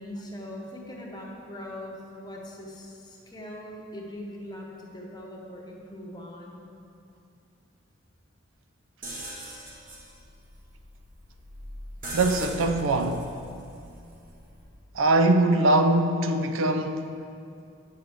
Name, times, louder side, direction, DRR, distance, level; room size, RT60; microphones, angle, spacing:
voice 1, 0.0-6.6, left 1 dB, 20° left, 0.8 m, -41 dB
sound 1, 9.0-14.8, right 1 dB, 40° right, 1.0 m, -41 dB
voice 2, 12.1-13.3 14.9-17.1, right 2 dB, 80° right, 0.4 m, -22 dB
8.5 x 6.4 x 3.5 m
head